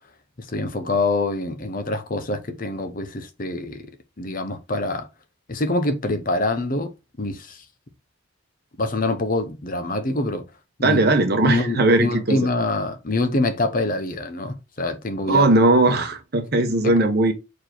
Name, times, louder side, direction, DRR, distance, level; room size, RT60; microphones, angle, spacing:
voice 1, 0.5-3.8 4.2-5.1 5.5-6.9 7.2-7.6 8.8-10.4 10.8-11.0 11.4-15.4 15.9-16.0 16.8-16.9, left 2 dB, 40° left, 0.9 m, -25 dB
voice 2, 10.8-12.4 15.3-17.3, right 2 dB, 50° right, 1.2 m, -18 dB
4.9 x 4.5 x 4.4 m
head